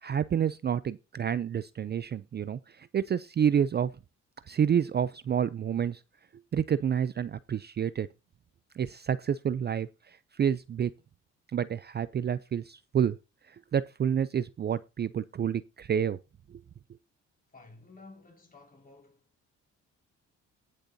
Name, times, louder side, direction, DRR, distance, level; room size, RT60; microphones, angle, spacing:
voice 1, 0.0-3.9 4.5-6.0 6.5-8.1 8.7-10.9 11.5-13.2 13.5-16.2 16.5-16.6, right 8 dB, 35° right, 0.4 m, -29 dB
voice 2, 17.5-19.3, left 3 dB, 30° left, 4.8 m, -53 dB
19.0 x 6.5 x 2.7 m
cardioid pair, 90°, 30 cm